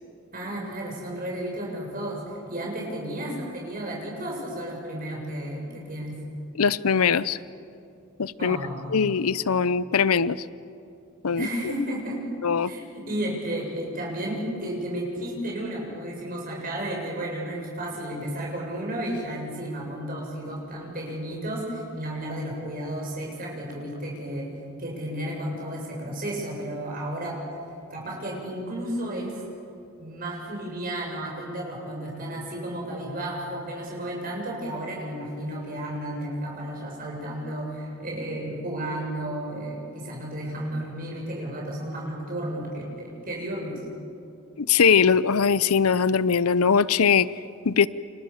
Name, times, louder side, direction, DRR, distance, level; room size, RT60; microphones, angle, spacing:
voice 1, 0.3-6.2 8.4-9.1 11.3-12.2 12.7-24.5 24.8-27.4 27.9-29.4 30.0-43.8, right 1 dB, 40° right, -2 dB, 7.7 m, -33 dB
voice 2, 6.5-7.4 8.2-8.6 8.9-10.4 11.2-11.5 12.4-12.7 44.6-47.3 47.6-47.9, left 6 dB, 80° left, 17 dB, 0.6 m, -21 dB
30.0 x 26.5 x 7.2 m, 2.6 s
head